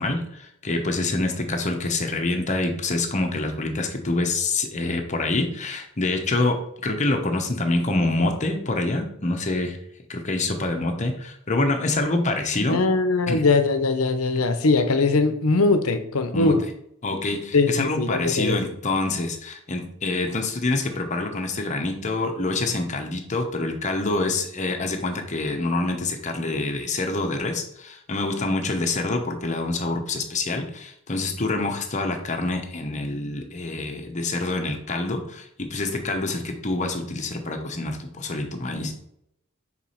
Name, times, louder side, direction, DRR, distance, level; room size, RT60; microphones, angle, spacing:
voice 1, 0.0-9.8 10.1-12.8 13.3-13.4 16.3-16.5 17.0-38.9, left 2 dB, 35° left, 4 dB, 1.0 m, -26 dB
voice 2, 12.7-16.6 17.5-18.6, left 3 dB, 85° left, 9 dB, 0.8 m, -21 dB
4.8 x 4.1 x 5.6 m, 0.74 s
head